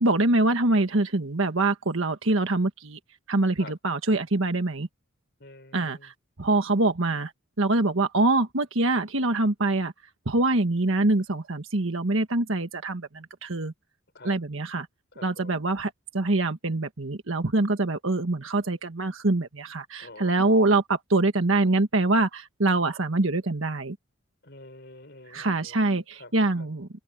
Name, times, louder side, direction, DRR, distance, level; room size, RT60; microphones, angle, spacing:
voice 1, 0.0-3.0 3.3-4.9 5.7-6.1 6.4-7.3 7.6-9.9 10.2-13.7 14.2-14.9 15.2-24.0 25.3-26.9, right 2 dB, 65° right, 1.5 m, -24 dB
voice 2, 5.4-6.1 6.5-6.6 14.1-14.4 15.1-15.6 20.0-20.7 24.4-26.7, left 2 dB, 50° left, 4.6 m, -47 dB
head